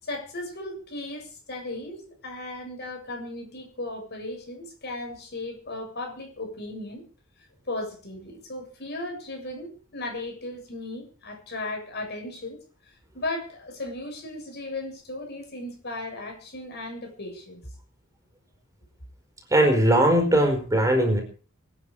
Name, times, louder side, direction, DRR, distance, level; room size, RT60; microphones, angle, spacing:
voice 1, 0.0-7.0 7.7-12.6 13.1-17.6, left 2 dB, 55° left, 3 dB, 7.4 m, -36 dB
voice 2, 19.5-21.2, right 1 dB, 15° right, 4 dB, 4.8 m, -19 dB
24.5 x 9.8 x 5.0 m, 0.40 s
head